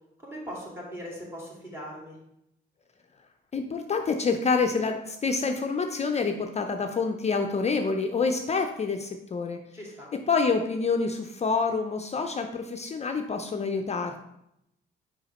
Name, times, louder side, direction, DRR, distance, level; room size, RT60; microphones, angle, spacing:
voice 1, 0.2-2.2 9.7-10.1, equal, 10° right, -3 dB, 2.2 m, -39 dB
voice 2, 3.5-9.6 10.1-14.2, left 4 dB, 35° left, 6 dB, 0.5 m, -27 dB
4.9 x 4.7 x 4.2 m, 0.81 s
cardioid pair, 90°, 20 cm